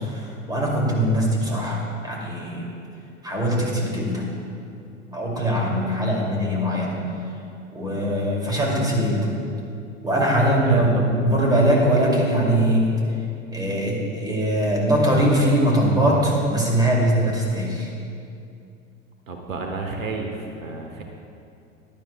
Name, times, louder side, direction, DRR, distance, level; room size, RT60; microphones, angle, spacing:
voice 1, 0.0-1.8 2.0-2.6 3.2-4.2 5.1-7.0 7.7-9.3 10.0-12.9 13.5-17.9, right 1 dB, 10° right, -3 dB, 2.5 m, -21 dB
voice 2, 10.7-11.1 19.3-21.0, right 3 dB, 75° right, 3 dB, 1.1 m, -31 dB
16.0 x 11.0 x 2.3 m, 2.5 s
figure-of-eight pair, 85°, 40 cm